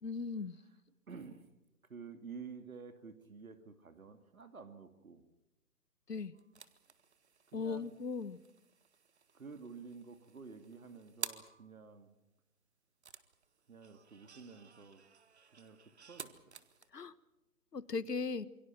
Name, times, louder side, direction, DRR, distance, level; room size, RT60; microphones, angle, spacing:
voice 1, 0.0-0.5 6.1-6.3 7.5-8.4 16.9-17.1 17.7-18.5, left 4 dB, 90° left, 16 dB, 1.5 m, -38 dB
voice 2, 1.1-1.4 1.9-5.2 7.5-8.0 9.3-12.1 13.7-15.0 15.5-15.8 16.1-16.3, right 5 dB, 60° right, 8 dB, 2.5 m, -51 dB
sound 1, 6.3-11.8 13.0-16.9, right 6 dB, 45° right, 1.4 m, -51 dB
27.5 x 22.5 x 6.1 m, 0.94 s
hypercardioid pair, 165°, 47 cm